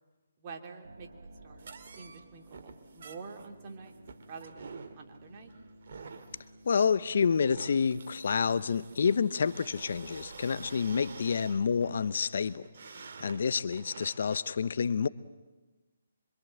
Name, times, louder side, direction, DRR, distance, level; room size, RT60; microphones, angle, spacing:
voice 1, 0.4-1.1 1.4-3.9 4.3-5.5, right 5 dB, 35° right, 3.0 m, -47 dB
sound 1, 0.8-12.1, right 1 dB, 75° right, 4.2 m, -55 dB
sound 2, 1.6-14.5, right 5 dB, 55° right, 2.3 m, -49 dB
voice 2, 6.6-12.6 13.2-15.1, left 6 dB, 60° left, 0.8 m, -28 dB
26.0 x 24.5 x 7.8 m
figure-of-eight pair, 150°, 0 cm